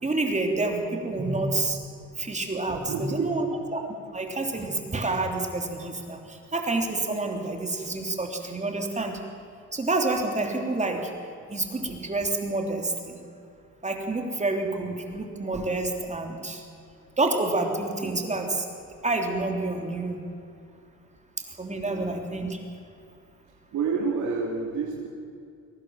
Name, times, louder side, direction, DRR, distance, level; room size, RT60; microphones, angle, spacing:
voice 1, 0.0-1.8 2.2-3.8 4.1-9.2 9.7-11.1 11.5-13.2 13.8-16.6 17.2-18.7 19.0-20.2 21.6-22.6, right 2 dB, 25° right, 3 dB, 3.2 m, -28 dB
voice 2, 2.7-3.5 21.8-22.2 23.7-25.1, right 5 dB, 75° right, -1 dB, 2.8 m, -29 dB
22.5 x 18.0 x 7.4 m, 2.5 s
cardioid pair, 90°, 30 cm